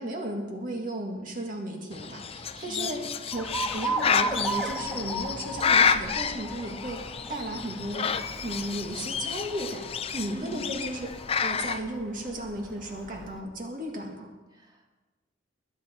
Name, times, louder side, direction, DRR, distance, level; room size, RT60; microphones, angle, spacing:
voice 1, 0.0-3.0 3.3-8.1 8.4-9.9 10.1-11.1 11.4-14.3, right 1 dB, 50° right, 1 dB, 1.9 m, -35 dB
Bird, 1.9-11.8, left 6 dB, 30° left, 0.5 m, -29 dB
voice 2, 2.6-2.9 10.3-10.6 14.5-14.9, right 1 dB, 25° right, 0 dB, 2.0 m, -41 dB
Alarm, 3.3-13.4, right 2 dB, ahead, 1.6 m, -37 dB
22.0 x 9.4 x 4.4 m, 1.2 s
head